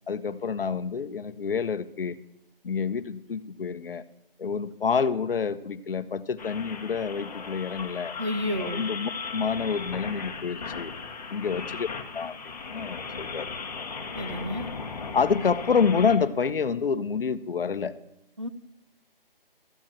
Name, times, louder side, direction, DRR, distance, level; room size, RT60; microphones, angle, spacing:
voice 1, 0.1-2.2 2.6-4.0 4.4-8.1 8.6-10.9 11.3-11.9 12.1-13.5 15.1-18.0, left 6 dB, 70° left, 13 dB, 0.8 m, -28 dB
sound 1, 6.4-16.2, left 4 dB, 45° left, 1.1 m, -37 dB
voice 2, 8.2-8.9 14.2-14.7 18.4-18.5, left 1 dB, 35° right, 10 dB, 0.4 m, -31 dB
13.5 x 4.7 x 7.3 m, 0.83 s
hypercardioid pair, 175°, 29 cm